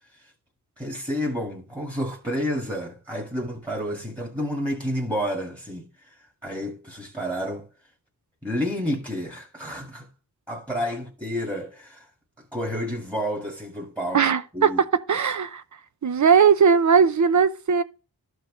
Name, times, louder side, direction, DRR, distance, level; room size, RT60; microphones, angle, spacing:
voice 1, 0.8-7.7 8.4-10.1 10.5-12.1 12.4-14.8, equal, 10° right, 1.8 m, -30 dB
voice 2, 14.1-14.7 15.1-15.6 16.0-17.8, right 6 dB, 50° right, 0.7 m, -18 dB
13.0 x 4.6 x 3.2 m
wide cardioid pair, 95°, 39 cm